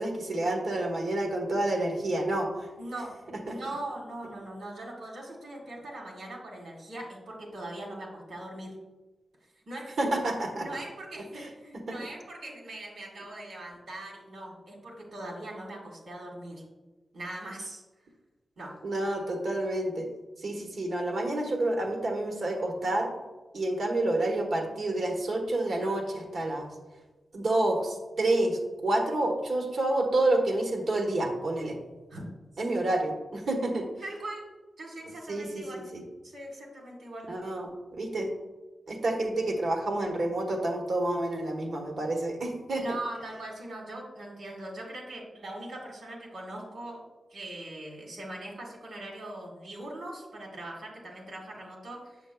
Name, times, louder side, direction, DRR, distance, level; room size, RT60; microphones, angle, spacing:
voice 1, 0.0-2.7 3.5-3.6 10.0-10.7 11.3-11.5 11.9-12.0 18.8-20.1 20.4-23.1 23.5-26.7 27.3-31.8 32.6-33.9 35.3-36.0 37.3-38.3 38.9-42.8, right 2 dB, 70° right, 1 dB, 1.2 m, -29 dB
voice 2, 2.8-3.1 3.5-8.7 9.7-10.1 10.5-16.6 17.1-17.8 18.6-18.7 32.1-32.2 33.7-35.8 36.2-37.5 42.8-47.0 47.3-52.2, right 1 dB, 90° right, -2 dB, 1.8 m, -41 dB
7.1 x 6.4 x 2.2 m, 1.2 s
wide cardioid pair, 105°, 0 cm